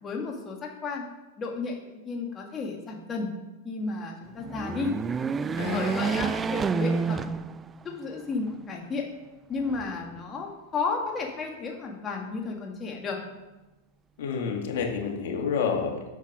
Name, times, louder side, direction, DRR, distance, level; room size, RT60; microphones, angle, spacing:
voice 1, 0.0-1.0 1.4-3.3 3.6-4.9 5.7-7.2 7.8-9.1 9.5-13.2, left 4 dB, 25° left, 0 dB, 1.8 m, -33 dB
sound 1, 4.4-8.0 8.5-8.6 9.6-10.4, right 5 dB, 20° right, 0.4 m, -29 dB
voice 2, 5.6-6.4 14.2-16.0, left 6 dB, 70° left, 2 dB, 2.0 m, -29 dB
8.3 x 7.4 x 6.0 m, 1.1 s
hypercardioid pair, 130°, 0 cm